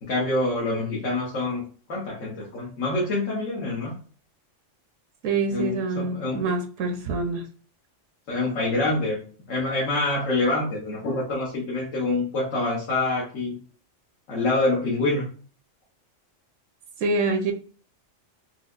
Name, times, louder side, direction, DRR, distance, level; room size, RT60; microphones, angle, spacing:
voice 1, 0.0-3.9 5.5-6.5 8.3-9.2 9.5-13.6 14.3-15.3, left 2 dB, 85° left, -4 dB, 1.3 m, -26 dB
voice 2, 5.2-7.5 17.0-17.5, right 3 dB, 85° right, 5 dB, 1.0 m, -26 dB
4.5 x 2.1 x 2.3 m, 0.40 s
omnidirectional pair, 1.3 m